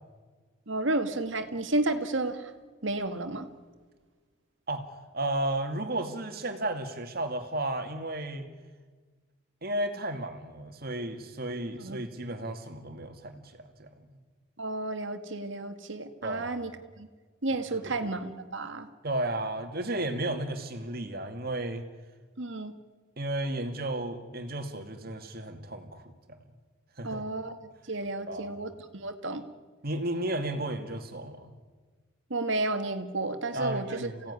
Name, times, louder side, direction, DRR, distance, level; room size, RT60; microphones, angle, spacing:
voice 1, 0.7-2.5 2.8-3.5 11.7-12.0 14.6-16.7 17.0-17.1 17.4-18.9 22.4-22.7 27.0-29.4 32.3-34.1, right 2 dB, 65° right, 8 dB, 1.9 m, -32 dB
voice 2, 4.7-8.5 9.6-14.1 16.2-16.6 17.7-18.0 19.0-21.8 23.2-26.4 27.0-27.2 28.3-28.6 29.8-31.5 33.5-34.3, right 1 dB, 50° right, 6 dB, 2.4 m, -33 dB
28.5 x 17.0 x 9.8 m, 1.4 s
head